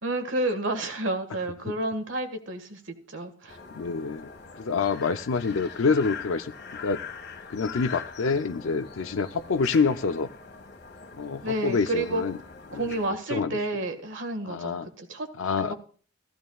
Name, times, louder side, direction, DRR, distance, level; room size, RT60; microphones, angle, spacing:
voice 1, 0.0-3.6 11.4-12.2 12.7-15.3 15.6-15.7, right 1 dB, 65° right, 6 dB, 1.8 m, -30 dB
sound 1, 3.5-13.1, left 6 dB, 55° left, 1.5 m, -42 dB
voice 2, 3.7-6.5 6.8-7.0 7.5-10.3 11.2-12.4 12.7-12.8 13.3-13.5 14.4-14.9 15.4-15.7, left 4 dB, 80° left, 8 dB, 0.5 m, -27 dB
15.0 x 14.5 x 2.4 m, 0.41 s
head